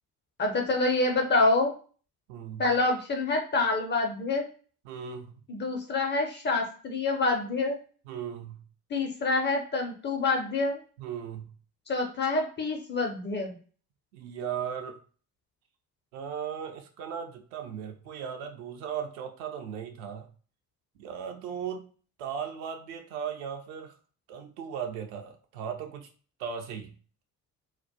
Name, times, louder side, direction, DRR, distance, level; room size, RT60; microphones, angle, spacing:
voice 1, 0.4-1.7 2.6-4.5 5.5-7.8 8.9-10.8 11.9-13.6, left 3 dB, 25° left, 3 dB, 0.4 m, -27 dB
voice 2, 2.3-2.6 4.9-5.3 8.1-8.6 11.0-11.5 14.1-15.0 16.1-20.3 21.0-21.9 22.2-23.9 24.3-26.1 26.4-26.9, right 8 dB, 65° right, 4 dB, 0.5 m, -37 dB
2.2 x 2.1 x 2.6 m, 0.40 s
figure-of-eight pair, 40°, 49 cm